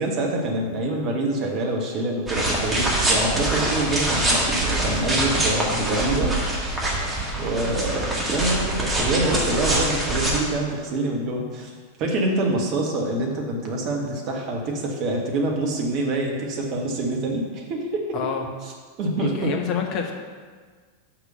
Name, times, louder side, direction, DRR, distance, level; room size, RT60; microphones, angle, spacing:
voice 1, 0.0-6.4 7.3-11.7 12.0-18.2 19.0-19.5, right 2 dB, 40° right, 0 dB, 1.6 m, -26 dB
sound 1, 2.3-10.4, right 1 dB, 15° right, 1.9 m, -24 dB
voice 2, 18.1-18.4 19.2-20.1, left 6 dB, 40° left, 3 dB, 1.0 m, -27 dB
6.0 x 6.0 x 6.8 m, 1.5 s
figure-of-eight pair, 90°, 0 cm